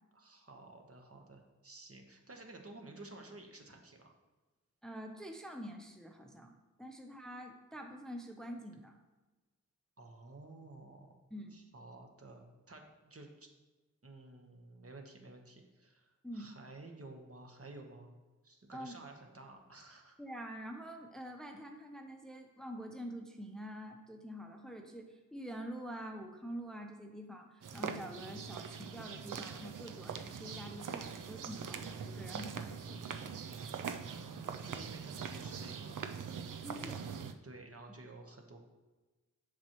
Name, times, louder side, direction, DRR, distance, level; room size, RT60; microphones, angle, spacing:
voice 1, 0.1-4.1 10.0-11.2 11.5-13.5 14.0-18.1 18.4-20.2 34.0-36.0 36.9-37.1 37.4-38.6, right 2 dB, 50° right, 2 dB, 1.1 m, -53 dB
voice 2, 4.8-6.5 6.8-8.9 11.3-11.6 16.2-16.5 18.7-19.0 20.2-33.0 36.6-37.0, equal, ahead, 3 dB, 0.7 m, -46 dB
sound 1, 27.6-37.3, right 6 dB, 90° right, 0.5 m, -42 dB
7.3 x 5.8 x 3.0 m, 1.2 s
wide cardioid pair, 50°, 31 cm